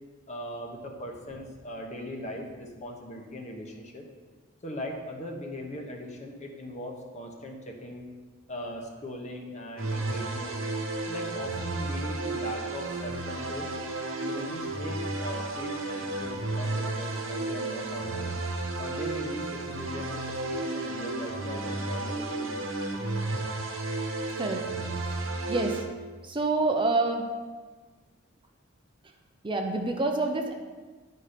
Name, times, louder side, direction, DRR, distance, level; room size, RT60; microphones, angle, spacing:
voice 1, 0.3-4.0 4.6-8.1 8.5-10.6 11.1-13.7 14.2-18.3 18.8-22.9, equal, 35° left, 2 dB, 1.0 m, -39 dB
sound 1, 9.8-25.8, right 2 dB, 85° right, 1.0 m, -33 dB
voice 2, 25.5-25.8 26.2-27.3 29.4-30.5, right 2 dB, 25° right, 3 dB, 0.6 m, -27 dB
10.0 x 4.3 x 5.1 m, 1.4 s
head